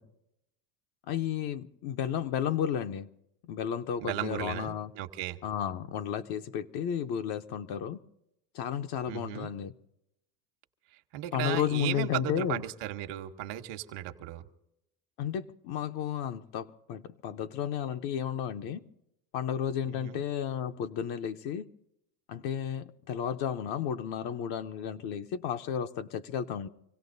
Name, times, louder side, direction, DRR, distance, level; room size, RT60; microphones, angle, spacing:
voice 1, 1.1-3.1 3.5-4.9 5.4-8.0 8.5-9.7 11.3-12.6 15.2-18.8 19.3-21.7 22.3-26.7, left 9 dB, 50° left, 0.9 m, -33 dB
voice 2, 4.0-5.4 9.1-9.5 11.1-14.4 19.9-20.2, right 14 dB, 65° right, 1.2 m, -36 dB
26.0 x 17.0 x 2.7 m
supercardioid pair, 125°, 47 cm